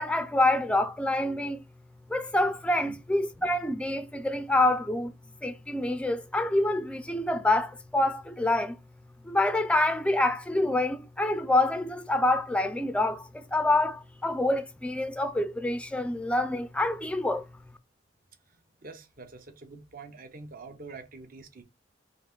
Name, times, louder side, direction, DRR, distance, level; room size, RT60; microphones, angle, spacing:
voice 1, 0.0-1.6 2.1-5.1 5.4-8.8 9.2-17.4, left 2 dB, 5° left, 0.3 m, -26 dB
voice 2, 18.5-21.6, right 3 dB, 50° right, 0.7 m, -46 dB
3.8 x 2.5 x 3.5 m
head